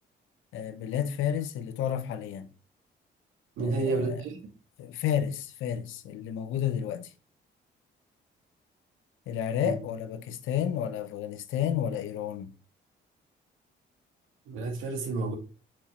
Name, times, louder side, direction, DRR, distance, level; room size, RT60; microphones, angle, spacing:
voice 1, 0.5-2.5 3.6-4.2 4.8-7.1 9.3-12.5, left 9 dB, 90° left, 0.9 m, -31 dB
voice 2, 3.6-4.4 9.6-9.7 14.5-15.3, right 3 dB, 90° right, 2.5 m, -30 dB
6.2 x 4.5 x 4.6 m
cardioid pair, 90°, 20 cm